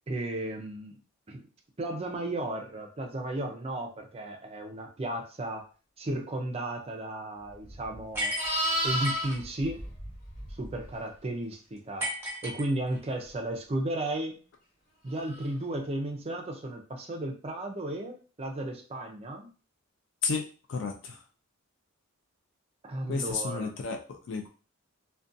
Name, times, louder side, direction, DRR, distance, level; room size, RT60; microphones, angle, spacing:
voice 1, 0.1-0.9 1.3-1.4 1.8-5.6 6.0-8.3 8.8-9.8 10.6-12.1 12.4-14.4 15.0-19.5 22.8-23.7, right 1 dB, 30° right, 3 dB, 0.4 m, -34 dB
Livestock farm animals working animals, 7.6-10.9 15.3-15.5, equal, 40° left, 1.3 m, -33 dB
sound 1, 8.1-9.4 12.0-13.2, equal, 10° right, 0.8 m, -34 dB
voice 2, 20.2-21.2 23.1-24.5, left 4 dB, 55° left, 3 dB, 0.3 m, -32 dB
2.5 x 2.2 x 2.5 m, 0.37 s
head